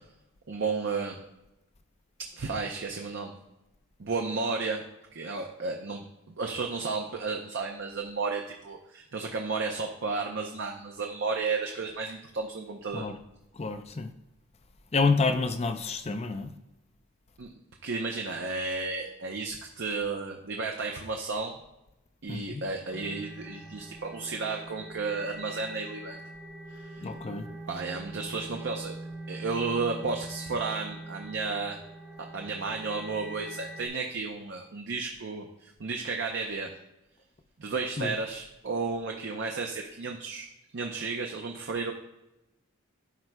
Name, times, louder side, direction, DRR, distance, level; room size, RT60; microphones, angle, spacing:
voice 1, 0.5-1.2 2.4-3.4 4.0-4.8 5.1-13.1 17.4-17.5 17.8-21.6 22.2-26.2 26.7-27.1 27.7-29.0 29.3-31.8 32.3-36.7 37.6-40.5 40.7-41.9, right 4 dB, 55° right, 0.6 m, -33 dB
voice 2, 13.5-14.1 14.9-16.5 22.3-22.6 27.0-27.4 38.0-38.1, left 4 dB, 30° left, 0.5 m, -28 dB
sound 1, 22.9-33.9, right 1 dB, 10° right, 1.1 m, -43 dB
12.0 x 4.7 x 2.2 m
head